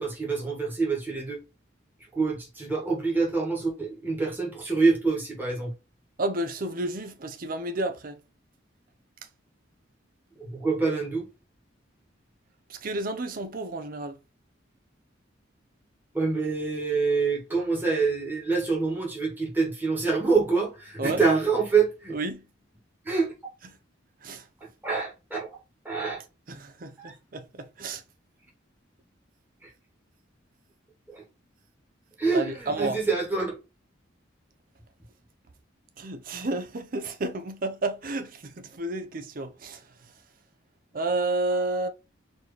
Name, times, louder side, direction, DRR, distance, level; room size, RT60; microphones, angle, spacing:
voice 1, 0.0-1.4 2.1-5.7 10.4-11.3 16.1-22.2 23.0-23.3 24.6-25.5 25.8-26.2 27.0-27.1 29.6-29.7 31.1-31.2 32.2-33.6, right 4 dB, 10° right, 1.4 m, -26 dB
voice 2, 6.2-8.2 12.7-14.2 21.0-21.2 22.1-22.4 24.2-24.5 26.5-28.0 32.3-33.0 36.0-39.8 40.9-41.9, right 2 dB, 45° right, 0.5 m, -31 dB
4.3 x 2.9 x 3.2 m
head